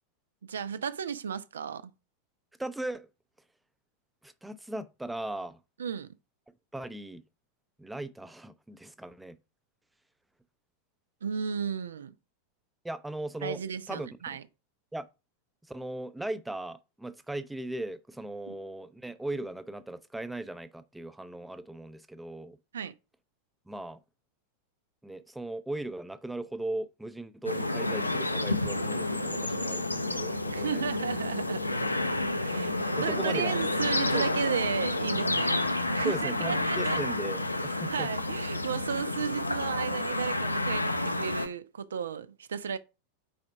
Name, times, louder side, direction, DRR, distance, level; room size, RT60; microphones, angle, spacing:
voice 1, 0.4-1.9 5.8-6.1 11.2-12.1 13.4-14.4 18.5-18.6 22.7-22.9 30.5-31.7 32.4-32.7 33.0-35.6 35.9-37.0 37.9-42.8, right 7 dB, 65° right, 0.5 m, -34 dB
voice 2, 2.6-3.1 4.2-5.6 6.7-7.2 7.8-9.4 12.8-13.6 13.9-14.1 14.9-15.1 15.7-22.6 23.7-24.0 25.0-30.8 32.5-33.6 34.1-34.3 36.0-38.1, right 1 dB, 5° right, 0.5 m, -38 dB
sound 1, 27.4-41.5, left 2 dB, 85° left, 0.5 m, -30 dB
4.9 x 4.3 x 5.9 m
figure-of-eight pair, 90°, 0 cm